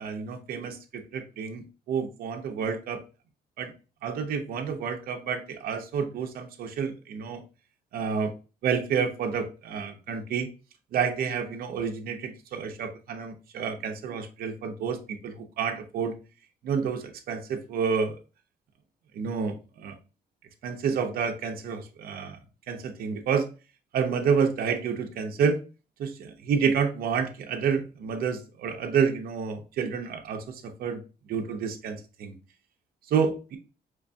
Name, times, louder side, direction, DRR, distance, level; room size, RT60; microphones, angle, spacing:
voice 1, 0.0-3.0 3.6-3.7 4.0-7.4 7.9-8.3 8.6-10.5 10.9-16.1 16.6-18.2 19.1-20.0 20.6-22.4 22.7-23.5 23.9-25.6 26.0-31.0 31.3-32.3 33.1-33.6, right 6 dB, 70° right, 4 dB, 0.6 m, -29 dB
4.6 x 2.5 x 2.2 m, 0.31 s
cardioid pair, 145°, 16 cm